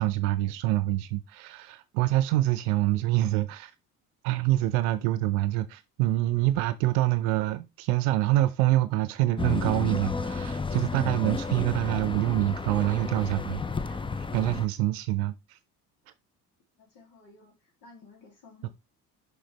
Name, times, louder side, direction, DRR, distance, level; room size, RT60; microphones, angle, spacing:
voice 1, 0.0-3.7 4.2-14.0 14.3-15.6 18.6-18.7, right 15 dB, 70° right, 0.7 m, -26 dB
sound 1, 9.4-14.7, left 4 dB, 10° left, 0.5 m, -32 dB
voice 2, 16.7-18.7, left 3 dB, 60° left, 3.0 m, -54 dB
6.3 x 5.2 x 3.3 m
figure-of-eight pair, 55°, 46 cm